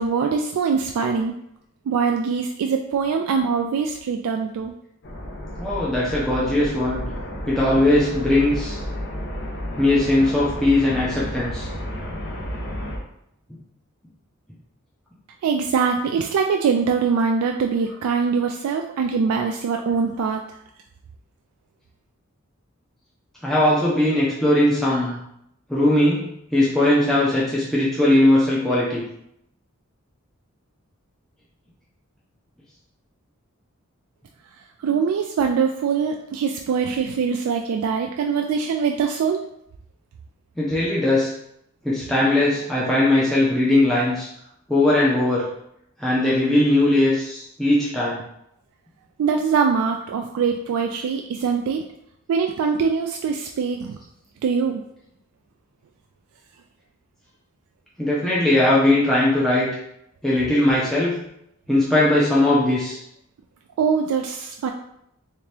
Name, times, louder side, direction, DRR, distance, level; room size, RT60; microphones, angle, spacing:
voice 1, 0.0-1.3 1.9-4.7 15.4-20.4 34.8-39.4 49.2-51.8 52.3-54.0 54.4-54.8 63.8-64.7, right 5 dB, 85° right, 5 dB, 0.3 m, -23 dB
sound 1, 5.0-13.0, equal, 50° left, 0.6 m, -31 dB
voice 2, 5.6-7.0 7.5-8.8 9.8-11.7 23.4-25.2 25.7-29.0 40.6-41.3 41.8-44.3 44.7-45.5 46.0-48.2 58.0-59.7 60.2-61.1 61.7-63.0, left 1 dB, ahead, -7 dB, 0.5 m, -19 dB
3.3 x 2.8 x 3.2 m, 0.76 s
head